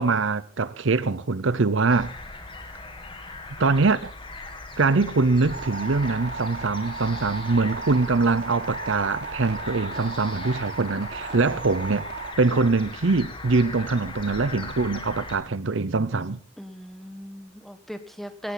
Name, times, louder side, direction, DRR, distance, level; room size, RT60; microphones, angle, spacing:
voice 1, 0.0-2.1 3.6-4.1 4.8-12.1 12.4-16.4, right 3 dB, 65° right, 0.7 m, -23 dB
sound 1, 1.9-15.4, left 3 dB, 25° left, 2.1 m, -39 dB
sound 2, 5.5-12.3, right 4 dB, 50° right, 4.1 m, -36 dB
voice 2, 16.6-18.5, equal, ahead, 1.4 m, -38 dB
18.0 x 17.5 x 4.0 m
head